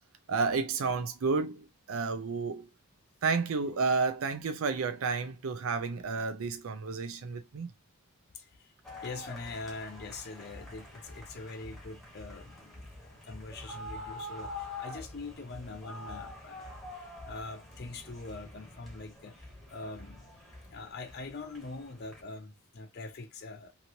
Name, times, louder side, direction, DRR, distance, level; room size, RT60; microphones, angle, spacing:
voice 1, 0.3-2.7 3.2-7.7, right 4 dB, 75° right, 0.5 m, -31 dB
voice 2, 8.3-8.7 9.0-20.3 20.7-23.7, left 3 dB, 50° left, 0.6 m, -43 dB
sound 1, 8.8-22.2, left 2 dB, ahead, 1.0 m, -46 dB
3.0 x 2.8 x 2.6 m
head